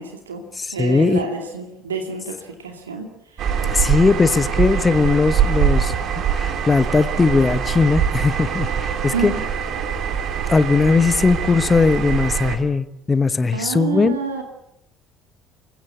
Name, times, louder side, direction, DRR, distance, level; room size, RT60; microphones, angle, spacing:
voice 1, 0.0-0.4 0.7-3.1 9.1-9.4 13.5-14.4, right 5 dB, 80° right, 5 dB, 2.5 m, -28 dB
voice 2, 0.6-1.2 3.7-5.9 6.3-9.3 10.5-14.2, left 4 dB, 25° left, 14 dB, 1.2 m, -18 dB
sound 1, 3.4-12.6, right 8 dB, 50° right, 3.0 m, -23 dB
28.5 x 16.0 x 8.5 m, 0.81 s
figure-of-eight pair, 55°, 0 cm